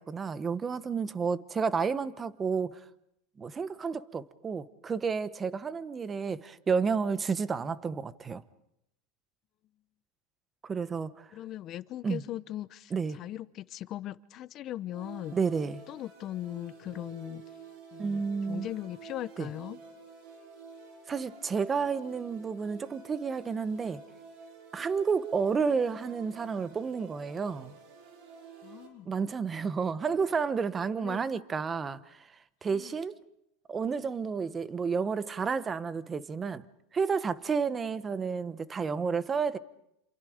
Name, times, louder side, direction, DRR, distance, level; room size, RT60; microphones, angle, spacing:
voice 1, 0.0-2.8 3.4-8.4 10.6-11.3 12.0-12.2 12.9-13.2 15.3-15.8 18.0-18.7 19.4-19.5 21.1-24.0 24.7-27.7 29.1-32.2 32.6-33.2 33.7-36.6 36.9-39.6, right 5 dB, 20° right, 1.0 m, -31 dB
voice 2, 11.3-15.4 15.9-17.5 17.9-19.8 28.6-29.1 31.0-31.2 32.7-32.9, left 13 dB, 40° left, 0.8 m, -39 dB
sound 1, 14.9-28.9, right 4 dB, 60° right, 5.9 m, -50 dB
28.0 x 27.5 x 5.1 m
supercardioid pair, 135°, 0 cm